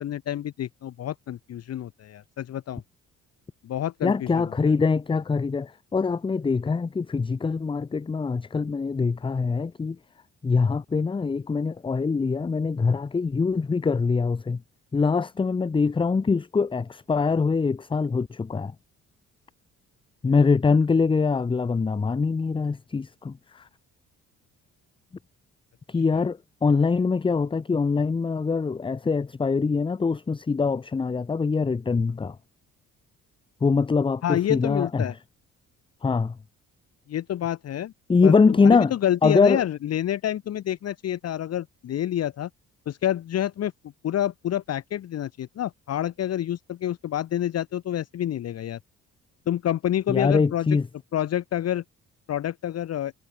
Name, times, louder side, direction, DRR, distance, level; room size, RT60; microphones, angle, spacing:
voice 1, 0.0-2.8 3.6-4.4 34.2-35.1 37.1-37.9 38.2-38.3 38.6-42.5 42.9-43.7 44.0-48.8 49.5-50.8 51.1-51.8 52.3-53.1, left 11 dB, 55° left, 0.9 m, -28 dB
voice 2, 4.0-10.0 10.4-14.6 14.9-18.7 20.2-23.7 25.9-32.4 33.6-35.1 36.0-36.4 38.1-38.9 39.2-39.6 50.1-50.9, left 4 dB, 15° left, 0.5 m, -23 dB
cardioid pair, 90°, 30 cm